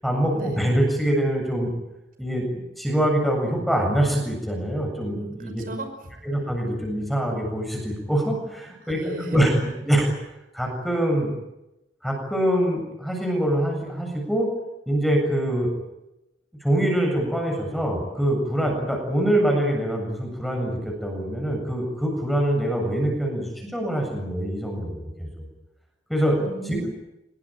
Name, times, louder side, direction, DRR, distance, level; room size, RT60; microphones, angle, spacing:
voice 1, 0.0-1.7 2.2-2.4 2.8-5.6 6.2-9.5 9.9-10.1 10.5-11.3 12.0-14.5 14.9-15.7 16.6-25.3 26.1-26.4, right 1 dB, ahead, 2 dB, 7.6 m, -24 dB
voice 2, 5.1-6.2 8.6-9.4 26.4-26.9, right 2 dB, 50° right, 7 dB, 5.6 m, -35 dB
25.5 x 22.0 x 9.2 m, 0.92 s
head